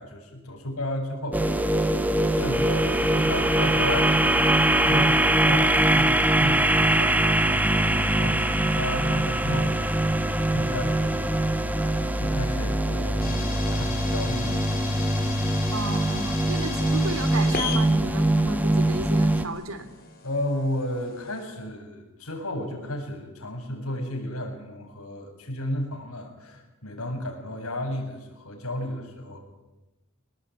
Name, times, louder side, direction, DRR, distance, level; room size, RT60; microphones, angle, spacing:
voice 1, 0.0-1.8 2.3-10.2 10.5-11.3 11.8-15.4 20.2-29.4, left 1 dB, 90° left, 2 dB, 7.5 m, -33 dB
sound 1, 1.3-19.5, right 1 dB, 10° right, 1.5 m, -23 dB
sound 2, 13.2-21.4, left 5 dB, 45° left, 5.5 m, -37 dB
voice 2, 15.7-19.9, right 3 dB, 65° right, 11 dB, 2.8 m, -33 dB
25.0 x 19.5 x 9.3 m, 1.1 s
head